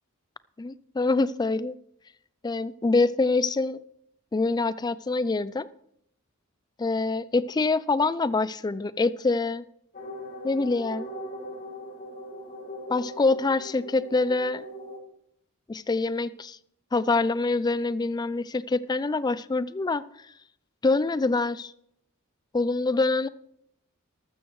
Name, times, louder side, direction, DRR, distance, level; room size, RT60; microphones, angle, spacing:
voice 1, 0.6-1.8 2.4-3.8 4.3-5.7 6.8-9.6 10.4-11.1 12.9-14.6 15.7-16.6 16.9-20.0 20.8-21.7 22.5-23.3, left 3 dB, 20° left, 18 dB, 0.3 m, -25 dB
sound 1, 9.9-15.0, equal, 45° left, 2.3 m, -40 dB
14.5 x 12.5 x 3.1 m, 0.72 s
head